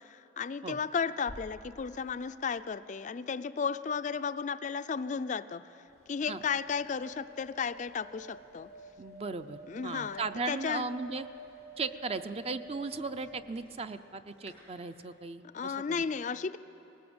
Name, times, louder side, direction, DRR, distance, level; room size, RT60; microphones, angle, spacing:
voice 1, 0.0-5.6 6.1-8.7 9.7-10.9 15.5-16.6, left 6 dB, 40° left, 12 dB, 0.4 m, -34 dB
sound 1, 1.3-3.3, equal, 80° right, 2.0 m, -51 dB
sound 2, 5.9-14.1 14.4-14.5, equal, 55° right, 6.3 m, -50 dB
voice 2, 9.0-11.3 11.8-16.0, right 4 dB, 30° right, 11 dB, 0.5 m, -37 dB
20.0 x 18.0 x 7.9 m, 3.0 s
head